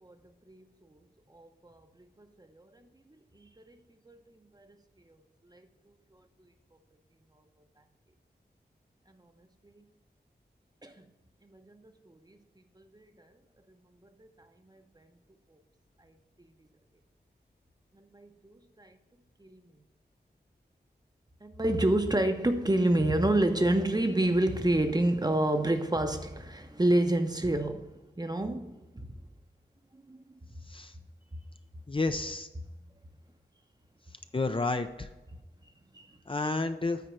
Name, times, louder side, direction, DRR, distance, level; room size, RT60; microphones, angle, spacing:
voice 1, 1.3-1.9 2.2-2.8 3.3-3.8 4.1-4.8 5.1-5.2 5.5-5.7 6.1-6.2 9.1-9.2 9.6-9.8 10.8-11.1 11.5-12.4 12.8-13.3 14.2-14.3 14.6-15.1 16.0-16.1 17.9-19.0 19.4-19.6 21.4-29.2 30.1-30.2 35.9-36.1, right 1 dB, 25° right, 0.9 m, -29 dB
voice 2, 31.9-32.5 34.3-35.1 36.3-37.0, left 3 dB, 30° left, 0.6 m, -30 dB
9.4 x 4.3 x 6.2 m
cardioid pair, 50°, 18 cm